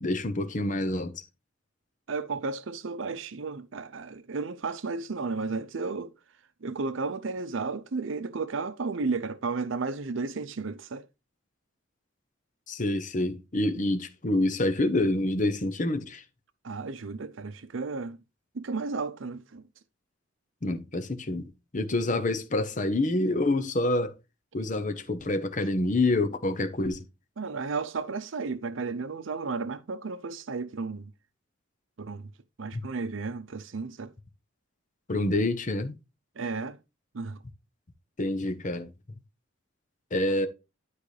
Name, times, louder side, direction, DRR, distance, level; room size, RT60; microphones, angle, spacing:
voice 1, 0.0-1.1 12.7-16.2 20.6-21.4 21.7-24.1 24.5-27.0 32.7-32.8 35.1-35.9 38.2-38.9 40.1-40.5, left 2 dB, 40° left, 0.9 m, -27 dB
voice 2, 2.1-6.1 6.6-11.1 16.6-18.2 18.5-19.6 27.4-31.1 32.0-32.3 32.6-34.1 36.4-36.8 37.1-37.4, right 4 dB, 70° right, 0.6 m, -33 dB
10.5 x 4.8 x 3.3 m
head